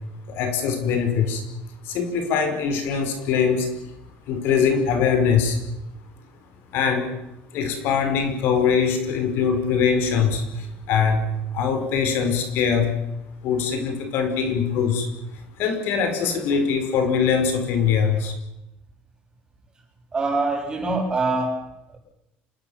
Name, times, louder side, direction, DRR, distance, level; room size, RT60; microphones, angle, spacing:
voice 1, 0.3-1.4 1.8-3.7 4.3-5.6 6.7-7.1 7.5-11.2 11.5-12.9 13.4-15.1 15.6-18.3, left 6 dB, 65° left, 7 dB, 5.2 m, -22 dB
voice 2, 20.1-22.0, right 3 dB, 20° right, 2 dB, 7.4 m, -25 dB
27.5 x 19.0 x 7.3 m, 0.87 s
cardioid pair, 125°, 4 cm